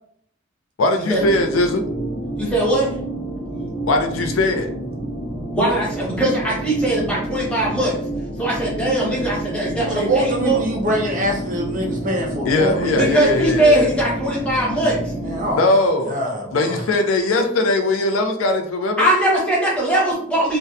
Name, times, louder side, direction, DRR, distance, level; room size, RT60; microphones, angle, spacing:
voice 1, 0.8-1.8 3.9-4.7 12.5-13.9 15.6-16.2 16.5-19.0, left 2 dB, 90° left, 4 dB, 0.4 m, -19 dB
sound 1, 1.2-15.5, right 1 dB, 35° left, 0.5 m, -29 dB
voice 2, 2.4-2.9 5.5-7.9 8.4-10.6 12.9-15.0 19.0-20.6, right 1 dB, 5° left, -5 dB, 0.7 m, -20 dB
voice 3, 9.9-13.0 15.2-17.0, equal, 40° right, 0 dB, 0.5 m, -24 dB
2.6 x 2.1 x 2.3 m, 0.66 s
head